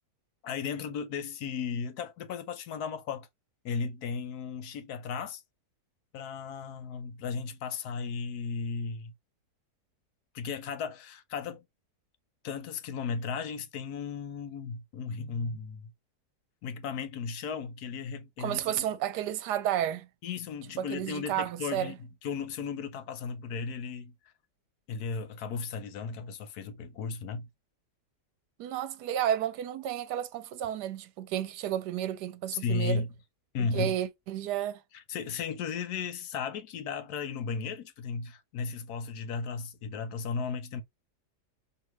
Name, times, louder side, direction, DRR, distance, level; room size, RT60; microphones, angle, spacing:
voice 1, 0.4-3.3 3.6-5.4 6.1-9.1 10.3-11.6 12.4-15.9 16.6-18.8 20.2-24.1 24.9-27.5 32.5-33.1 33.5-34.0 34.9-40.8, left 5 dB, 70° left, 1.1 m, -35 dB
voice 2, 18.4-20.1 20.8-22.0 28.6-33.0 33.6-34.8, right 11 dB, 80° right, 1.2 m, -32 dB
4.6 x 3.2 x 3.0 m
omnidirectional pair, 1.8 m